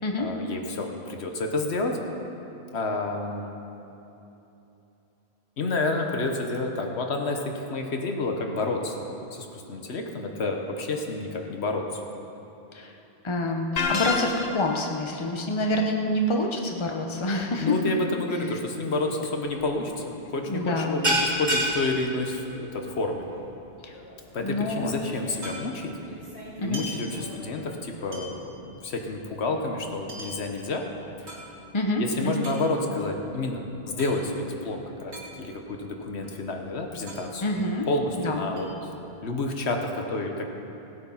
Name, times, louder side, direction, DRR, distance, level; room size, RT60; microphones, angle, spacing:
voice 1, 0.2-2.0 2.7-3.6 5.6-12.0 17.6-23.3 24.3-25.9 26.6-30.9 32.0-37.4 37.9-38.9 39.2-40.5, left 2 dB, 85° left, 3 dB, 1.4 m, -29 dB
voice 2, 13.2-17.8 20.5-21.0 23.8-23.9 24.4-24.9 26.6-26.8 31.7-32.5 37.4-37.9 38.2-38.4, left 1 dB, 30° left, 2 dB, 1.0 m, -27 dB
sound 1, 13.8-14.8, left 4 dB, 60° left, 1.1 m, -27 dB
sound 2, 19.4-19.7 20.0-20.3 20.5-27.4, right 1 dB, 45° right, 3.0 m, -31 dB
sound 3, 22.7-23.1 23.4-23.5 23.7-26.1 26.5-27.7 28.1-31.9 32.3-34.2 34.4-34.5 34.8-35.8 36.1-38.2 38.6-39.4, equal, 85° right, 2.7 m, -43 dB
17.0 x 8.3 x 5.6 m, 2.9 s
omnidirectional pair, 1.1 m